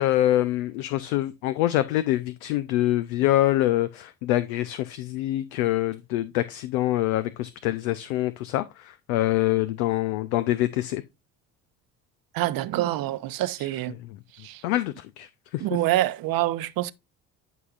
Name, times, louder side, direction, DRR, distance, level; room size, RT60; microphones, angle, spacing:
voice 1, 0.0-11.0 14.6-15.3 15.5-15.6, left 14 dB, 70° left, 0.7 m, -25 dB
voice 2, 12.3-14.0 14.4-14.6 15.6-16.9, right 15 dB, 55° right, 0.8 m, -26 dB
12.0 x 5.6 x 2.5 m
hypercardioid pair, 65°, 42 cm